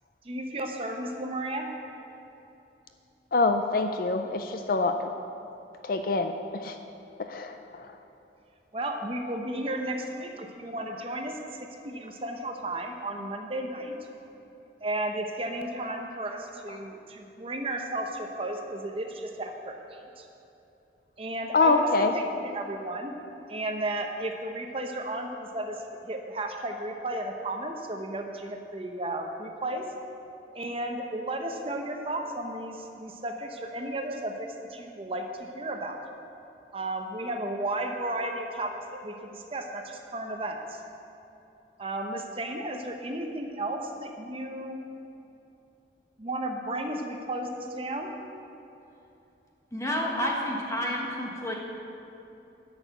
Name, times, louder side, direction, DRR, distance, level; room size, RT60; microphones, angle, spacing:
voice 1, 0.2-1.7 8.7-14.0 14.8-20.3 21.2-23.2 23.5-29.9 30.5-36.0 36.7-40.8 41.8-44.8 46.2-48.1, right 1 dB, 30° right, 3 dB, 0.7 m, -34 dB
voice 2, 3.3-5.1 5.8-6.8 7.2-8.0 16.7-16.9 21.5-22.1, left 3 dB, 50° left, 7 dB, 0.4 m, -26 dB
voice 3, 49.7-51.5, equal, 15° left, -1 dB, 1.4 m, -30 dB
10.5 x 6.5 x 7.9 m, 2.9 s
head